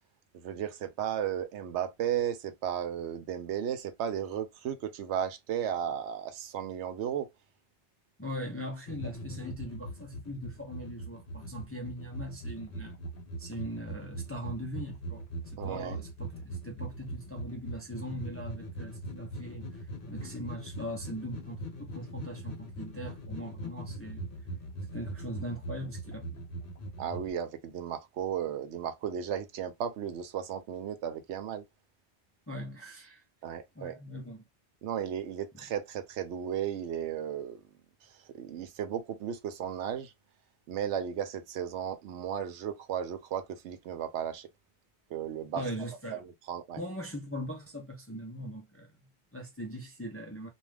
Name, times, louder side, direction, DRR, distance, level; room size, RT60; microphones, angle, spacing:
voice 1, 0.3-7.3 15.6-16.1 27.0-31.7 33.4-34.0 34.8-37.6 38.0-40.1 40.7-44.5 45.1-45.6 46.2-46.8, right 9 dB, 85° right, 0.9 m, -35 dB
voice 2, 8.2-13.0 13.4-15.3 15.5-19.7 20.1-24.3 24.9-26.4 32.5-33.2 33.7-34.4 45.6-46.2 46.8-50.5, equal, 20° left, 0.4 m, -40 dB
sound 1, 8.9-27.3, right 1 dB, 55° left, 1.1 m, -41 dB
2.4 x 2.3 x 3.2 m
omnidirectional pair, 1.1 m